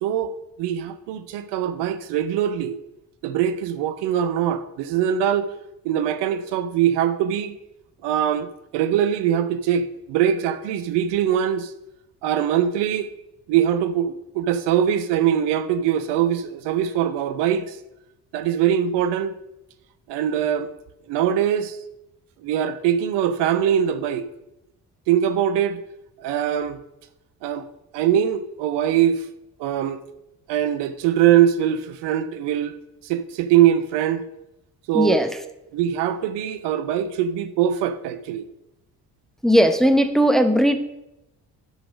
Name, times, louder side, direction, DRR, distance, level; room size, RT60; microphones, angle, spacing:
voice 1, 0.0-2.8 3.2-5.5 5.8-7.6 8.0-11.7 12.2-13.1 13.5-17.8 18.3-19.3 20.1-20.7 21.1-21.8 22.4-24.2 25.1-25.8 26.2-26.8 27.4-27.7 27.9-29.2 29.6-30.0 30.5-32.7 33.0-34.2 34.9-35.2 35.7-38.5, right 10 dB, 60° right, 0.7 m, -22 dB
voice 2, 34.9-35.3 39.4-40.8, equal, ahead, 0.7 m, -17 dB
11.0 x 4.0 x 6.0 m
figure-of-eight pair, 40°, 46 cm